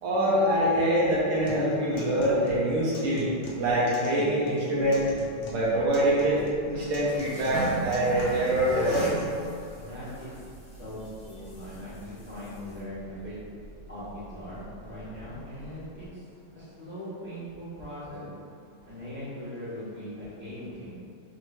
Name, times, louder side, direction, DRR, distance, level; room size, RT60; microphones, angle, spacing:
voice 1, 0.0-5.0 5.5-9.1, right 1 dB, 70° right, -7 dB, 1.2 m, -25 dB
Acoustic guitar, 1.5-9.5, equal, 90° left, 1.4 m, -43 dB
sound 1, 5.2-16.1, equal, 40° left, 0.9 m, -40 dB
voice 2, 9.7-10.3 10.8-11.0 11.2-13.4 13.9-16.2 16.5-18.3 18.8-20.9, equal, 5° right, -13 dB, 1.2 m, -40 dB
4.3 x 2.9 x 2.7 m, 2.4 s
omnidirectional pair, 1.9 m